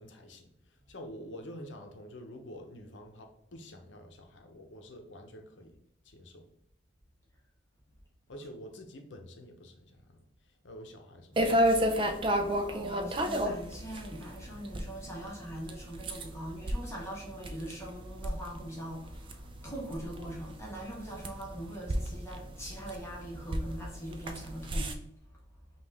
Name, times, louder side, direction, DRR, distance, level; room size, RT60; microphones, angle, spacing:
voice 1, 0.0-5.8 6.0-6.5 8.3-11.7, equal, 80° left, 4 dB, 0.7 m, -48 dB
sound 1, 11.4-24.9, equal, 30° right, 0.4 m, -33 dB
voice 2, 12.3-24.9, right 1 dB, 15° left, -3 dB, 1.2 m, -42 dB
5.2 x 2.5 x 3.4 m, 0.77 s
head